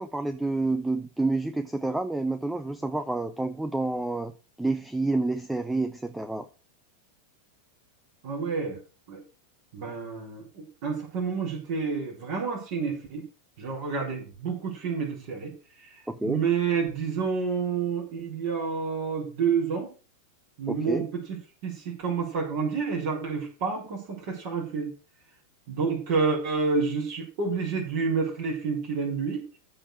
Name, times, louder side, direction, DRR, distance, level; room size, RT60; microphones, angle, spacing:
voice 1, 0.0-4.3 4.6-6.5 16.1-16.4 20.7-21.0, right 2 dB, 5° right, 12 dB, 0.7 m, -29 dB
voice 2, 8.2-8.8 9.1-9.2 9.7-13.2 13.6-15.5 15.8-19.9 20.6-21.0 21.6-24.9 25.7-29.4, right 5 dB, 45° right, -1 dB, 4.7 m, -29 dB
14.0 x 4.8 x 6.4 m, 0.36 s
figure-of-eight pair, 90°, 0 cm